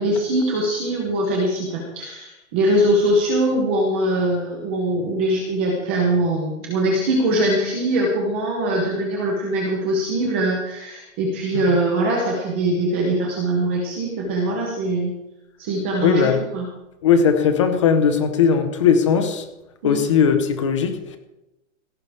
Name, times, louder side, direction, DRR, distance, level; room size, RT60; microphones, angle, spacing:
voice 1, 0.0-15.1 15.6-16.7 19.8-20.0, right 1 dB, 10° right, 0 dB, 0.8 m, -22 dB
voice 2, 16.0-16.4 17.0-19.5 19.8-21.2, left 6 dB, 25° left, 8 dB, 1.1 m, -18 dB
17.0 x 14.0 x 3.5 m, 0.93 s
hypercardioid pair, 180°, 39 cm